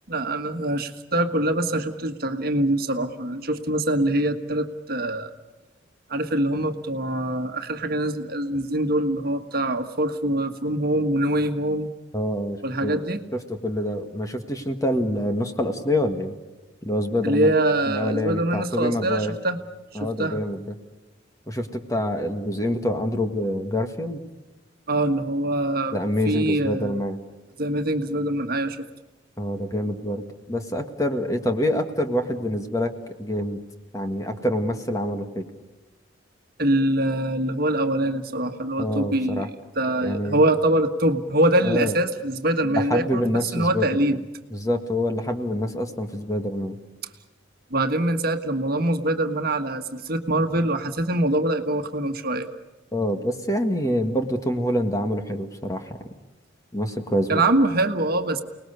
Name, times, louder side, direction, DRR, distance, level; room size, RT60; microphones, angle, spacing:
voice 1, 0.1-5.3 6.1-11.9 12.6-13.2 17.2-19.6 19.9-20.4 24.9-26.0 26.2-27.0 27.6-28.8 36.6-44.2 47.7-52.5 57.3-58.4, right 1 dB, 50° right, 6 dB, 1.5 m, -24 dB
voice 2, 12.1-13.0 13.5-16.4 16.8-17.5 17.9-19.3 20.0-20.6 21.5-24.2 25.9-27.2 29.4-32.9 33.2-33.6 33.9-35.5 38.8-39.5 40.0-40.4 41.6-42.0 42.7-43.9 44.5-46.8 52.9-56.1 56.7-57.4, left 1 dB, 15° left, 6 dB, 1.8 m, -26 dB
30.0 x 20.0 x 6.7 m, 1.1 s
head